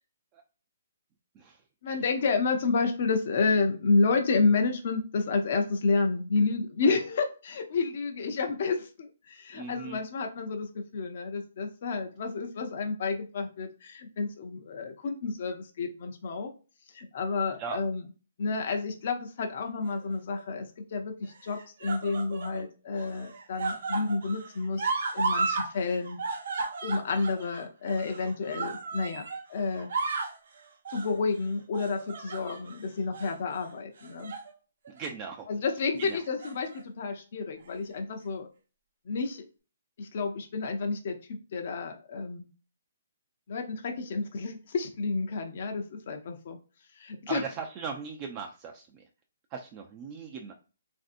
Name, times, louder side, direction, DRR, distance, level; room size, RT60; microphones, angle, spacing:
voice 1, 1.8-16.5 16.9-18.0 18.4-26.2 26.8-29.2 29.5-29.9 30.9-34.3 35.5-38.5 39.1-39.4 40.0-42.5 43.5-46.6 47.0-47.4, left 4 dB, 50° left, 4 dB, 0.5 m, -30 dB
voice 2, 9.5-10.0 17.6-17.8 28.1-28.3 34.9-35.5 36.0-36.2 47.3-49.1 49.5-50.5, right 5 dB, 25° right, 3 dB, 0.3 m, -38 dB
sound 1, 19.8-20.4 21.3-22.6 22.9-25.7 26.0-29.4 29.8-30.4 30.8-31.1 31.7-32.8 33.1-33.3 34.0-34.5 34.9-35.0 36.1-36.8 37.7-37.8, right 4 dB, 60° right, 0.6 m, -34 dB
3.2 x 2.6 x 2.5 m, 0.35 s
hypercardioid pair, 160°, 0 cm